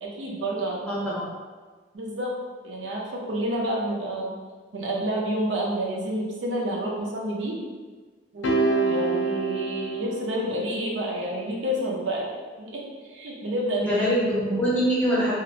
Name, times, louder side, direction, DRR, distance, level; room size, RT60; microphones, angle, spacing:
voice 1, 0.0-0.9 1.9-2.3 2.6-4.4 4.7-7.6 8.3-12.8 13.1-14.0, right 1 dB, 80° right, -3 dB, 0.5 m, -29 dB
voice 2, 0.9-1.3 13.8-15.3, equal, 5° left, -8 dB, 0.6 m, -24 dB
sound 1, 8.4-10.9, right 3 dB, 75° left, 0.3 m, -26 dB
2.7 x 2.0 x 2.6 m, 1.4 s
head